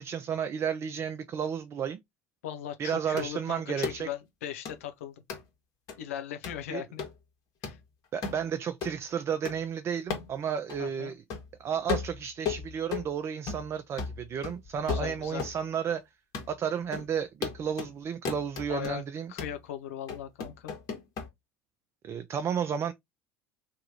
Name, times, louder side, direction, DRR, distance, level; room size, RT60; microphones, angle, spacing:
voice 1, 0.0-2.0 2.8-4.1 6.7-6.8 8.1-11.2 11.6-16.0 16.5-19.3 22.0-22.9, right 8 dB, 35° right, 0.5 m, -32 dB
voice 2, 2.4-5.1 6.0-7.0 7.6-7.8 10.8-11.1 14.8-15.4 18.7-19.0 19.3-20.7, left 10 dB, 70° left, 0.8 m, -38 dB
sound 1, 3.2-3.3 3.8-4.0 4.6-4.8 5.3-5.4 5.9-6.0 6.4-6.6 7.0-7.1 7.6-7.8 8.2-8.4 8.8-8.9 9.4-9.6 10.1-10.3 10.7-10.8 11.3-11.5 11.9-13.1 13.5-13.7 14.0-15.6 15.9-16.0 16.3-16.5 16.9-17.1 17.4-17.9 18.2-18.9 19.4-19.6 20.1-21.3, left 6 dB, 50° left, 1.6 m, -35 dB
3.5 x 3.0 x 2.9 m
figure-of-eight pair, 65°, 8 cm